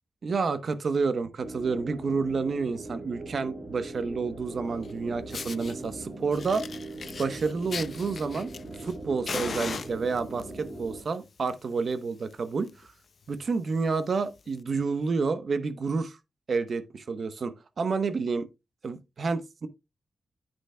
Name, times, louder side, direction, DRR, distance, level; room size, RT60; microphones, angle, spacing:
voice 1, 0.2-6.6 7.2-8.5 8.8-12.7 13.3-16.2 16.5-18.5 18.8-19.7, right 4 dB, 60° right, 0.9 m, -29 dB
sound 1, 1.4-11.0, right 2 dB, 45° right, 3.9 m, -41 dB
Fire, 4.8-4.9 5.3-5.7 6.3-8.9 9.3-10.4 11.2-11.5 11.8-11.9 12.3-12.4 12.6-12.9 13.4-13.5 14.5-14.6, left 5 dB, 60° left, 0.5 m, -38 dB
10.0 x 8.1 x 2.2 m
cardioid pair, 70°, 0 cm